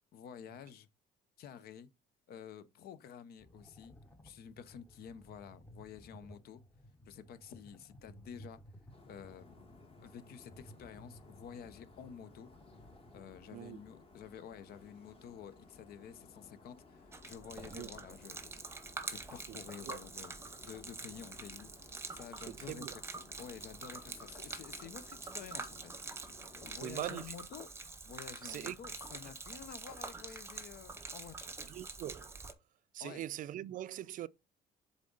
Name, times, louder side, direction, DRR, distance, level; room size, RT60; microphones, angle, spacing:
voice 1, 0.1-0.9 1.4-1.9 2.3-3.9 4.2-6.6 7.1-8.6 9.1-9.7 10.0-12.5 13.1-20.3 20.6-21.7 22.1-22.9 23.1-25.9 26.2-27.7 28.0-31.5 33.0-33.2, left 8 dB, 65° left, 0.7 m, -50 dB
sound 1, 3.4-13.4, equal, 15° left, 0.9 m, -57 dB
sound 2, 8.9-27.0, left 3 dB, 35° left, 1.5 m, -59 dB
Gurgling / Liquid, 17.1-32.5, right 3 dB, 15° right, 0.8 m, -46 dB
voice 2, 22.5-23.0 26.8-27.2 28.4-28.8 31.7-32.4 32.9-34.3, right 12 dB, 55° right, 0.4 m, -42 dB
7.5 x 3.7 x 3.8 m
cardioid pair, 110°, 17 cm